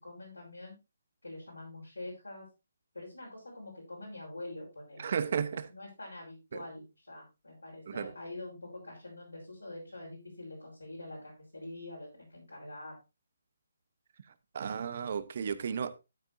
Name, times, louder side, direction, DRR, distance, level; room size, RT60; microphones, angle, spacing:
voice 1, 0.0-0.8 1.2-2.5 2.9-12.9, left 2 dB, 85° left, 4.8 m, -45 dB
voice 2, 5.0-5.7 6.5-6.6 7.9-8.1 14.5-15.9, right 7 dB, 50° right, 1.0 m, -33 dB
12.0 x 9.1 x 2.7 m
figure-of-eight pair, 145°, 0 cm